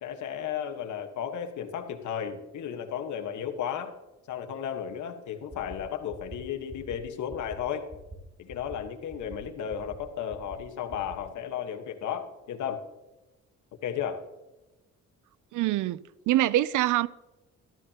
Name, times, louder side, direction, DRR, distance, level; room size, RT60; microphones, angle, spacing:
voice 1, 0.0-3.9 4.3-7.9 8.4-12.8 13.8-14.2, left 8 dB, 75° left, 1.3 m, -34 dB
sound 1, 5.5-5.8 6.1-6.4 6.7-7.0 7.3-7.6 7.9-8.2 8.5-8.8 9.1-9.4 9.7-10.0 10.3-10.6 10.9-11.2, right 3 dB, 30° right, 2.9 m, -44 dB
voice 2, 15.5-16.0 16.3-17.1, right 15 dB, 80° right, 0.5 m, -24 dB
14.0 x 13.0 x 2.9 m
cardioid pair, 90°, 30 cm